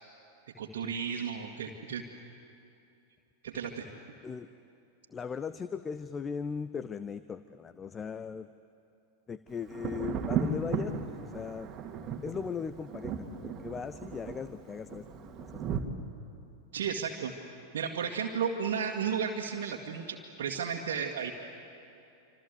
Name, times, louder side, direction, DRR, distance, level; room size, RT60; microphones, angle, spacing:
voice 1, 0.6-2.0 3.4-3.9 16.7-17.3 17.7-21.3, right 7 dB, 60° right, -1 dB, 2.0 m, -33 dB
voice 2, 5.1-8.5 9.3-10.9 11.2-11.7 12.2-15.8, left 6 dB, 20° left, 14 dB, 0.7 m, -38 dB
Thunder, 9.7-15.8, right 6 dB, 30° right, 2.2 m, -36 dB
27.0 x 26.5 x 8.2 m, 2.8 s
figure-of-eight pair, 90°, 0 cm